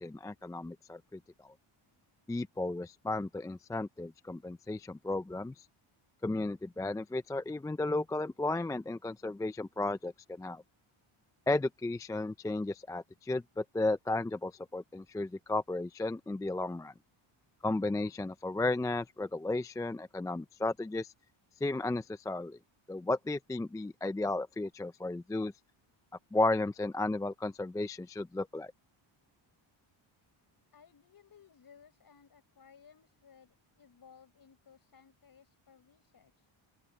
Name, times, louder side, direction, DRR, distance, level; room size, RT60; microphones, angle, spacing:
voice 1, 0.0-1.5 2.3-5.5 6.2-10.6 11.5-16.9 17.6-21.1 21.6-22.6 22.9-25.5 26.3-28.7, left 2 dB, 10° left, 0.3 m, -34 dB
voice 2, 30.7-36.5, left 7 dB, 45° left, 6.0 m, -60 dB
open air
cardioid pair, 115°, 49 cm